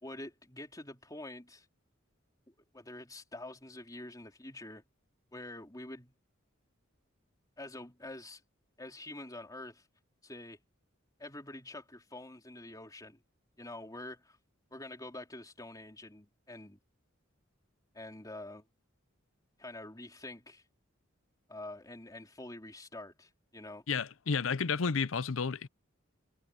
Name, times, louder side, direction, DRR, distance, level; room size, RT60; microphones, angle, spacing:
voice 1, 0.0-1.7 2.5-4.8 5.3-6.1 7.6-8.4 8.8-9.9 10.2-10.6 11.2-13.2 13.6-14.4 14.7-16.8 17.9-18.6 19.6-20.6 21.5-23.8, left 1 dB, 20° left, 3.5 m, -46 dB
voice 2, 23.9-25.7, left 5 dB, 80° left, 0.7 m, -31 dB
head